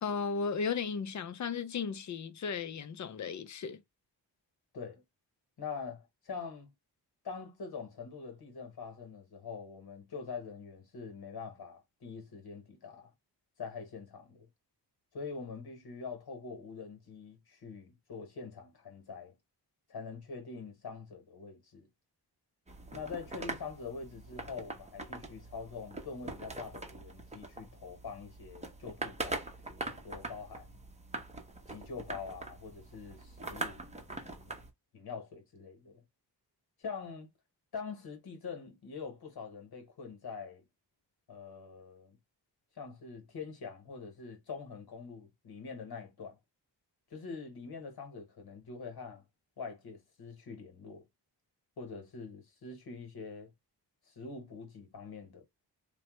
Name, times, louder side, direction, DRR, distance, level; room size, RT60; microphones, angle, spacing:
voice 1, 0.0-3.8, left 5 dB, 45° left, 0.6 m, -35 dB
voice 2, 5.6-6.7 7.2-13.1 13.6-14.5 15.1-19.3 19.9-21.9 22.9-30.8 31.7-34.7 34.9-36.0 36.8-37.3 37.7-40.6 41.3-42.2 42.7-46.4 47.1-49.2 49.6-51.0 51.8-53.5 54.1-55.4, left 5 dB, 60° left, 1.2 m, -44 dB
sound 1, 22.7-34.7, right 2 dB, 15° right, 0.7 m, -43 dB
3.0 x 2.2 x 3.0 m
cardioid pair, 65°, 42 cm